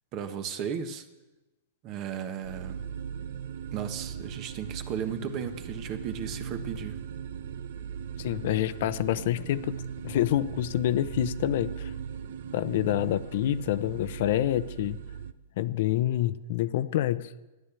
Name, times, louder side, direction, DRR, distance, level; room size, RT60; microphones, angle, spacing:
voice 1, 0.1-1.1 1.8-2.8 3.7-7.0, right 8 dB, 35° right, 9 dB, 1.4 m, -35 dB
sound 1, 2.4-15.3, right 8 dB, 65° right, 0.8 m, -38 dB
voice 2, 8.2-9.7 10.0-11.9 12.5-15.0 15.6-17.3, left 13 dB, 60° left, 12 dB, 0.8 m, -27 dB
13.0 x 10.5 x 8.4 m, 1.1 s
hypercardioid pair, 130°, 0 cm